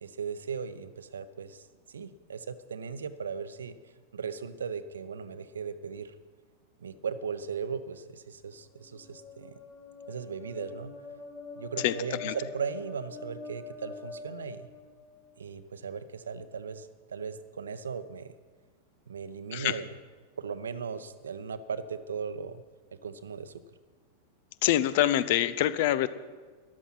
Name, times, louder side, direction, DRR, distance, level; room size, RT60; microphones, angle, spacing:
voice 1, 0.0-6.1 6.8-9.5 10.1-10.9 11.6-14.7 15.4-18.3 19.1-19.9 20.4-22.6 23.0-23.6, right 6 dB, 70° right, 13 dB, 0.7 m, -37 dB
sound 1, 8.5-15.3, left 3 dB, 20° left, 3.4 m, -45 dB
voice 2, 24.6-26.1, left 13 dB, 50° left, 15 dB, 0.6 m, -25 dB
13.5 x 11.0 x 5.7 m, 1.4 s
figure-of-eight pair, 90°, 0 cm